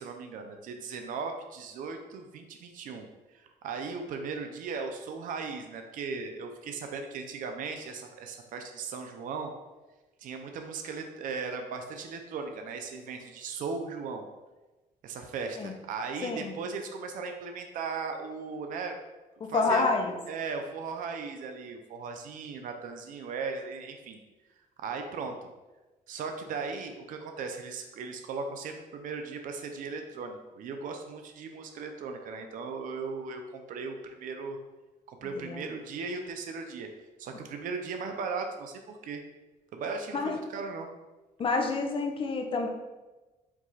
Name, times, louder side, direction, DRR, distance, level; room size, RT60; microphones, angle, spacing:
voice 1, 0.0-9.5 10.2-14.3 15.0-19.0 19.5-19.9 20.3-24.2 24.8-25.5 26.1-34.6 35.1-36.9 37.2-39.2 39.7-40.9, right 4 dB, 65° right, 5 dB, 0.5 m, -37 dB
voice 2, 16.2-16.5 19.5-20.2 35.4-35.6 40.1-40.4 41.4-42.7, left 3 dB, 40° left, 3 dB, 0.6 m, -28 dB
4.6 x 2.4 x 4.0 m, 1.1 s
cardioid pair, 120°, 15 cm